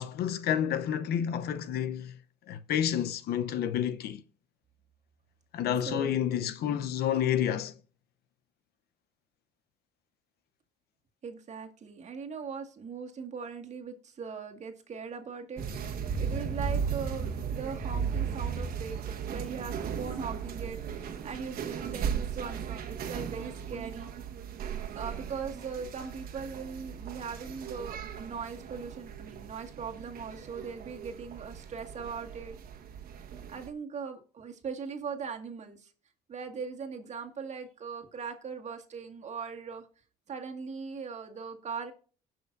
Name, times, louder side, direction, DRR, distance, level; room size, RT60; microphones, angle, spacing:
voice 1, 0.0-2.2 2.5-4.2 5.5-7.8, left 9 dB, 70° left, 0.8 m, -29 dB
voice 2, 5.9-6.4 11.2-15.6 16.2-24.1 25.0-32.6 33.5-35.9 36.3-39.9 40.3-41.9, right 5 dB, 45° right, 1.9 m, -40 dB
sound 1, 15.6-33.7, right 7 dB, 60° right, 1.5 m, -36 dB
sound 2, 17.0-22.8, equal, 20° left, 4.5 m, -55 dB
17.5 x 6.2 x 2.6 m
cardioid pair, 110°, 17 cm